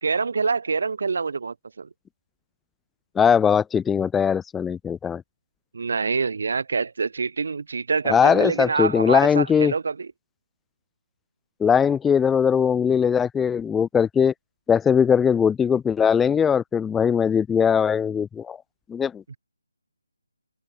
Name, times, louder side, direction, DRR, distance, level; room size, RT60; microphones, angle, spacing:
voice 1, 0.0-1.9 5.7-10.1 19.3-19.4, right 4 dB, 55° right, 2.2 m, -26 dB
voice 2, 3.2-5.2 8.1-9.7 11.6-14.3 14.7-18.6 18.9-19.3, left 7 dB, 5° left, 0.6 m, -20 dB
figure-of-eight pair, 155°, 0 cm